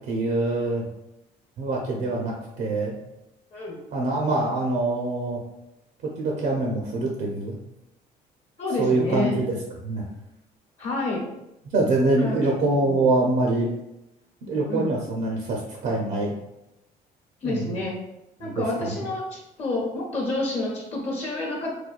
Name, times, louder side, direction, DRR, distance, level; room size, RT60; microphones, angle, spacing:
voice 1, 0.1-0.8 1.6-3.0 3.9-5.4 6.2-7.6 8.8-9.5 9.8-10.1 11.7-13.7 14.5-16.3 17.4-17.6 18.4-18.6, right 2 dB, 65° right, -1 dB, 0.7 m, -24 dB
voice 2, 3.5-3.8 8.6-9.4 10.8-11.3 12.2-12.4 12.8-13.1 14.7-14.9 17.4-18.0 18.4-21.7, left 2 dB, 40° left, -2 dB, 0.9 m, -29 dB
4.4 x 2.2 x 2.4 m, 0.89 s
cardioid pair, 110°, 17 cm